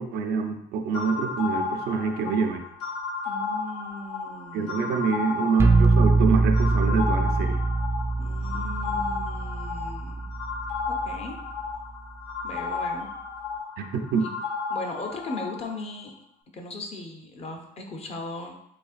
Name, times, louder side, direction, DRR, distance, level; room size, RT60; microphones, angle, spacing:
voice 1, 0.0-2.6 4.5-7.6 13.8-14.3, right 5 dB, 70° right, 5 dB, 0.5 m, -26 dB
sound 1, 0.9-15.7, left 4 dB, 85° left, 0.8 m, -33 dB
voice 2, 3.3-4.9 8.2-10.3 10.9-11.4 12.4-13.1 14.7-16.1 16.5-18.6, left 2 dB, 40° left, 3 dB, 0.6 m, -38 dB
sound 2, 5.6-11.4, right 3 dB, 15° right, 0.3 m, -23 dB
4.1 x 3.2 x 2.4 m, 0.75 s
cardioid pair, 110°, 17 cm